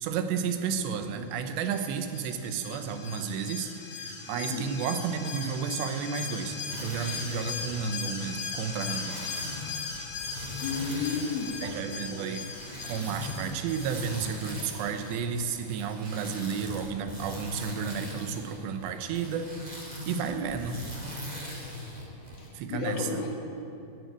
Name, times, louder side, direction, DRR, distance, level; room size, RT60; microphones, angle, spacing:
voice 1, 0.0-9.2 11.6-12.5 12.8-19.6 20.0-20.8 22.5-23.2, right 6 dB, 85° right, 7 dB, 3.1 m, -32 dB
Alarm, 1.7-15.2 15.5-15.6, left 5 dB, 60° left, 3.4 m, -39 dB
sound 1, 6.7-22.5, left 1 dB, 15° right, 1.4 m, -41 dB
voice 2, 10.6-11.6 22.4-23.3, left 5 dB, 85° left, 2 dB, 3.6 m, -32 dB
13.5 x 11.0 x 8.1 m, 2.7 s
omnidirectional pair, 4.9 m